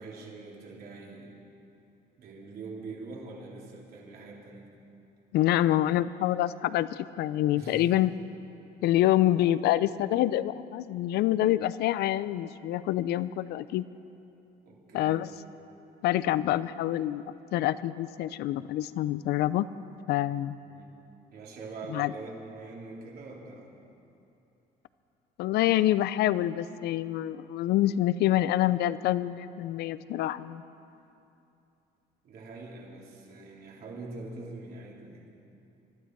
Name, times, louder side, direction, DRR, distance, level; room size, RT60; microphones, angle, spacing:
voice 1, 0.0-1.4 2.2-4.7 7.5-7.9 14.6-15.3 20.6-21.0 21.3-23.7 32.2-35.3, right 3 dB, 65° right, -3 dB, 3.4 m, -43 dB
voice 2, 5.3-8.1 8.8-13.8 14.9-15.3 16.0-17.2 17.5-19.7 20.1-20.6 21.9-22.1 25.4-30.6, left 13 dB, 75° left, 16 dB, 0.5 m, -26 dB
23.5 x 12.0 x 4.6 m, 2.7 s
cardioid pair, 110°, 17 cm